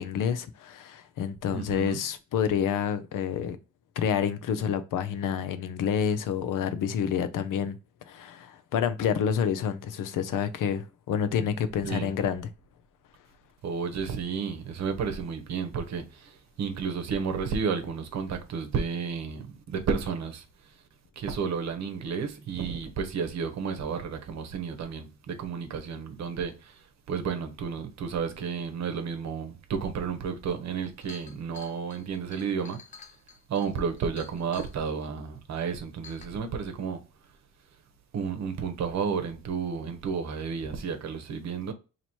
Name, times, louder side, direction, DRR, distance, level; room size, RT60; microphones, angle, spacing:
voice 1, 0.0-3.6 4.0-7.8 8.1-12.5, left 8 dB, 80° left, 0.6 m, -28 dB
voice 2, 1.5-2.0 11.8-12.1 13.6-20.4 21.2-26.8 27.1-32.8 33.5-37.0 38.1-41.7, right 6 dB, 60° right, 0.9 m, -32 dB
Chink clink, 30.4-30.5 30.8-34.8 35.5-35.6 36.0-36.3, left 5 dB, 25° left, 0.5 m, -49 dB
2.9 x 2.9 x 4.4 m
wide cardioid pair, 170°, 31 cm